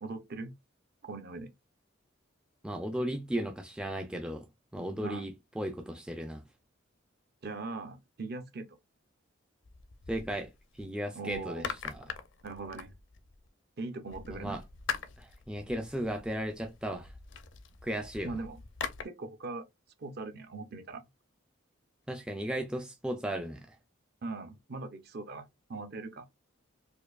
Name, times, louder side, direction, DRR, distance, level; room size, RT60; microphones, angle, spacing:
voice 1, 0.0-0.5 1.0-1.5 5.0-5.3 7.4-8.7 11.1-11.7 12.4-12.9 13.8-14.6 18.2-18.6 19.0-19.7 20.0-21.0 24.2-26.3, right 3 dB, 50° right, 0.6 m, -40 dB
voice 2, 2.6-4.5 4.7-6.4 10.1-10.5 10.7-12.0 14.3-14.6 15.2-17.1 17.8-18.4 22.1-23.8, equal, 5° right, 0.3 m, -35 dB
sound 1, 9.6-10.8 11.3-13.5 14.1-19.0, left 6 dB, 65° left, 0.5 m, -42 dB
4.4 x 2.6 x 2.3 m
head